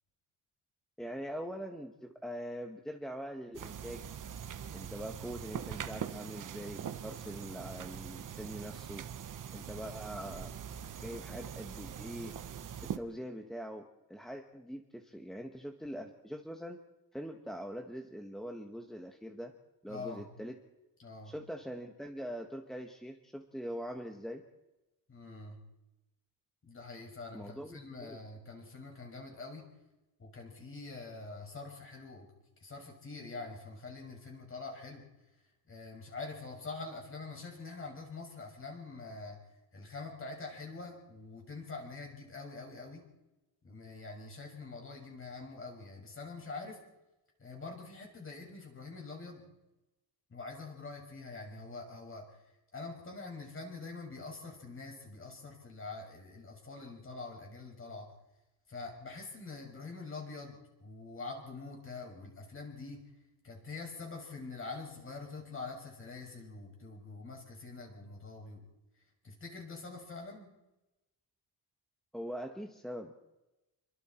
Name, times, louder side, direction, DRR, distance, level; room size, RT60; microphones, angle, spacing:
voice 1, 1.0-4.0 4.7-9.0 9.5-10.5 11.0-12.4 13.0-16.8 17.1-19.5 19.8-20.5 21.2-24.4 27.3-28.2 72.1-73.1, equal, ahead, 3 dB, 1.5 m, -43 dB
sound 1, 3.5-13.0, right 8 dB, 50° right, 1.2 m, -42 dB
voice 2, 19.9-20.3 21.0-21.3 25.1-25.6 26.6-29.7 30.2-32.3 32.6-35.4 35.7-43.1 43.6-46.8 47.4-49.5 50.3-58.1 58.7-63.1 63.4-68.7 68.9-70.5, left 3 dB, 30° left, 1 dB, 6.2 m, -45 dB
28.5 x 23.5 x 4.5 m, 1.0 s
cardioid pair, 155°, 41 cm